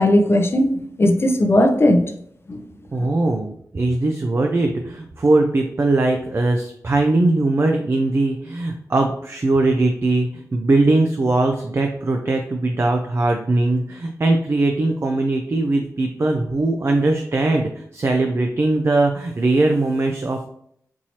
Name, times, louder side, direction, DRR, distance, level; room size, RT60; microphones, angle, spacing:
voice 1, 0.0-2.1 2.5-2.6, left 1 dB, 40° left, 6 dB, 0.5 m, -17 dB
voice 2, 2.9-20.5, right 2 dB, 45° right, 3 dB, 0.4 m, -20 dB
4.5 x 2.7 x 2.8 m, 0.67 s
cardioid pair, 55°, 6 cm